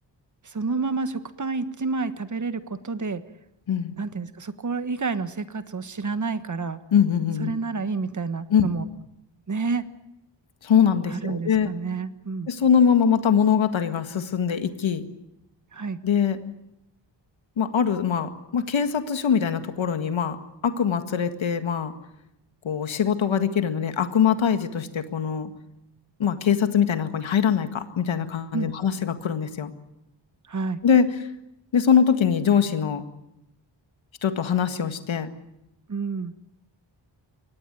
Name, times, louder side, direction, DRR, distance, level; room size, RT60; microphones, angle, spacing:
voice 1, 0.4-3.2 4.0-6.8 7.4-8.9 9.5-9.8 11.1-12.5 15.7-16.0 28.5-28.7 30.5-30.8 35.9-36.3, right 4 dB, 40° right, 12 dB, 1.4 m, -29 dB
voice 2, 6.9-7.5 8.5-8.7 10.6-11.7 12.5-15.1 16.0-16.4 17.6-20.4 20.6-21.9 22.6-25.5 26.2-29.7 30.8-31.2 31.7-33.0 34.2-35.3, left 7 dB, 85° left, 9 dB, 1.9 m, -22 dB
24.0 x 18.5 x 9.2 m, 0.85 s
wide cardioid pair, 100°, 45 cm